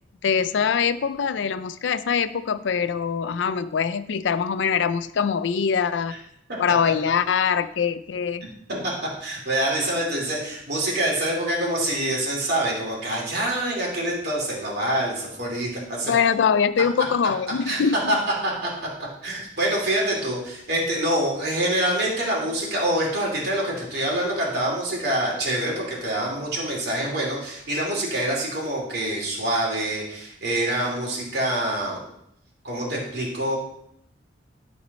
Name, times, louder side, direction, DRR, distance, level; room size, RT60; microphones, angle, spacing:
voice 1, 0.2-6.1 6.6-8.4 16.1-18.2, left 6 dB, 75° left, 14 dB, 0.4 m, -23 dB
voice 2, 9.2-16.1 17.7-17.8 18.1-18.2 18.4-18.7 19.0-32.0 32.6-33.6, right 1 dB, 60° right, -3 dB, 2.8 m, -26 dB
12.0 x 4.3 x 4.1 m, 0.75 s
head